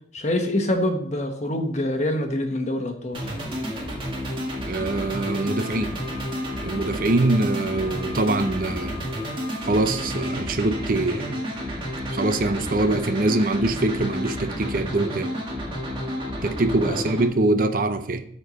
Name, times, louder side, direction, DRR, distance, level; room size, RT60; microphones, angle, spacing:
voice 1, 0.1-3.3 16.9-17.0, left 1 dB, 40° left, 5 dB, 1.1 m, -25 dB
sound 1, 3.1-17.3, equal, 30° right, 1.9 m, -31 dB
Alarm, 4.7-10.3, left 3 dB, 5° right, 1.2 m, -43 dB
voice 2, 4.7-5.9 6.6-9.1 9.6-11.4 12.1-15.3 16.4-18.3, right 2 dB, 50° right, 9 dB, 0.7 m, -23 dB
13.0 x 4.4 x 4.1 m, 0.63 s
head